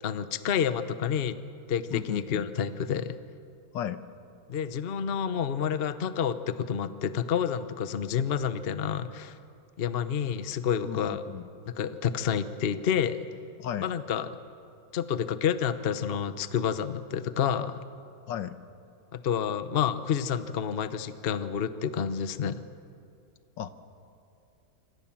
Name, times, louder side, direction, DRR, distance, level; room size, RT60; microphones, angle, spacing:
voice 1, 0.0-1.4 1.7-3.2 4.5-9.4 9.8-11.2 11.7-13.2 13.8-14.3 14.9-17.8 19.1-22.6, left 8 dB, 45° left, 12 dB, 0.8 m, -29 dB
voice 2, 1.9-2.4 3.7-4.0 10.8-11.5 13.6-13.9 18.3-18.6 23.6-23.7, left 10 dB, 75° left, 12 dB, 1.6 m, -35 dB
26.5 x 26.0 x 7.4 m, 2.5 s
omnidirectional pair, 2.0 m